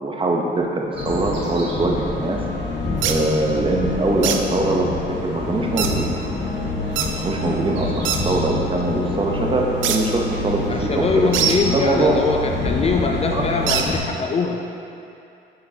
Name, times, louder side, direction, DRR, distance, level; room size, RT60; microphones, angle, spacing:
voice 1, 0.0-2.4 3.0-4.9 5.2-6.1 6.8-7.9 8.3-11.3 11.7-12.2 13.3-13.5, right 2 dB, 25° right, 0 dB, 0.8 m, -22 dB
sound 1, 0.9-14.0, left 2 dB, 65° left, 1.0 m, -27 dB
sound 2, 1.0-13.7, right 1 dB, 60° right, 1.1 m, -36 dB
sound 3, 3.0-3.2 4.2-4.4 5.8-5.9 7.0-7.1 8.0-8.2 9.8-10.0 11.3-11.6 13.7-13.9, right 9 dB, 75° right, 0.5 m, -22 dB
voice 2, 10.7-14.6, left 4 dB, 30° left, 2 dB, 0.4 m, -23 dB
6.5 x 5.7 x 2.8 m, 2.6 s
cardioid pair, 90°, 20 cm